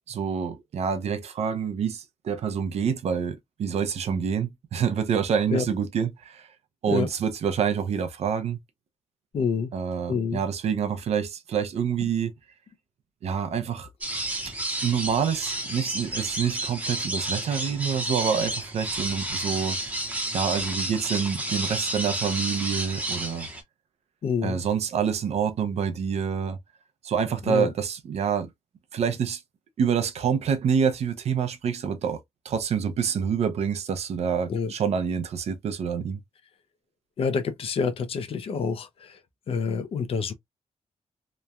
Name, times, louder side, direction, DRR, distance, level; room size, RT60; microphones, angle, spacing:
voice 1, 0.1-6.5 6.8-8.6 9.7-12.3 13.2-13.9 14.8-19.8 20.3-23.5 24.4-26.6 27.0-28.5 28.9-29.4 29.8-32.2 32.4-36.2, right 7 dB, 70° right, 0.5 m, -27 dB
voice 2, 9.3-9.7 10.1-10.4 24.2-24.6 27.5-27.7 34.5-34.7 37.2-39.2 39.5-40.3, left 5 dB, 55° left, 0.5 m, -27 dB
sound 1, 14.0-23.6, right 1 dB, 15° right, 0.7 m, -31 dB
3.0 x 2.2 x 2.3 m
wide cardioid pair, 150°, 12 cm